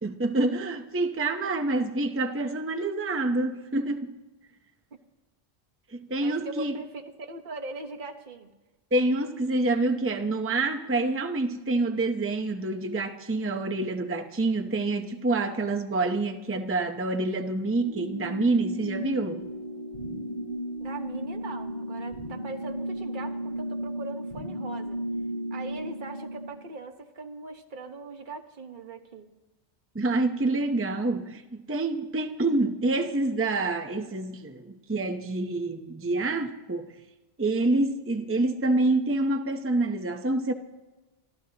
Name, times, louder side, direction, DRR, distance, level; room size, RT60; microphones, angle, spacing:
voice 1, 0.0-4.1 5.9-6.7 8.9-19.4 29.9-36.9 37.4-40.5, right 2 dB, 15° right, 0.7 m, -27 dB
voice 2, 6.2-8.5 20.8-25.0 25.5-29.3, right 3 dB, 45° right, 1.3 m, -40 dB
sound 1, 17.8-26.5, equal, 50° left, 3.5 m, -34 dB
26.5 x 14.5 x 2.9 m
omnidirectional pair, 1.2 m